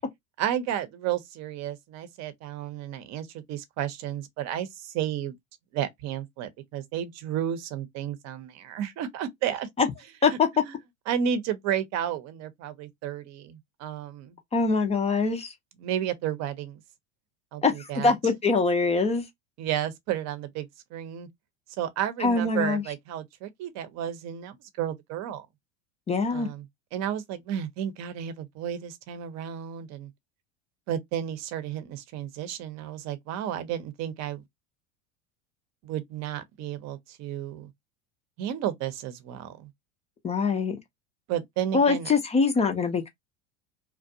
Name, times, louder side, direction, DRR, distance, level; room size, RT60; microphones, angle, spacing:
voice 1, 0.4-5.3 5.7-9.7 10.3-10.4 10.6-10.7 11.1-14.4 15.8-16.8 17.5-18.1 19.6-21.3 21.8-25.5 26.3-26.6 26.9-30.1 30.9-34.4 35.8-37.7 38.4-39.7 41.3-42.1, right 10 dB, 45° right, 0.7 m, -32 dB
voice 2, 14.5-15.5 17.6-19.3 22.2-22.8 26.1-26.5 40.2-40.8 41.7-43.1, left 4 dB, 20° left, 0.4 m, -23 dB
2.5 x 2.2 x 2.6 m
hypercardioid pair, 100°, 37 cm